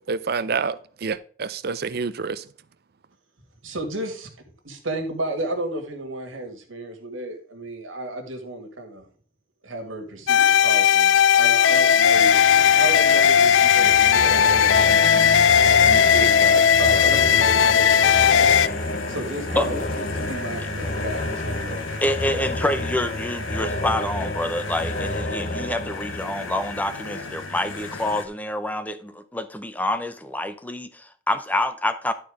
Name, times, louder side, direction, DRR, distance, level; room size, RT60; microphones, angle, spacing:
voice 1, 0.1-2.4, right 5 dB, 50° right, 0.5 m, -28 dB
voice 2, 3.6-4.3 4.6-9.1 9.6-12.4 12.7-15.4 15.8-21.8, right 1 dB, 90° right, 1.9 m, -33 dB
sound 1, 10.3-18.7, left 8 dB, 70° left, 0.4 m, -17 dB
sound 2, 12.1-28.3, left 3 dB, 85° left, 1.2 m, -34 dB
sound 3, 13.7-27.2, left 1 dB, 40° left, 0.9 m, -31 dB
voice 3, 22.0-32.1, left 1 dB, 10° left, 0.6 m, -27 dB
11.5 x 4.4 x 4.9 m
head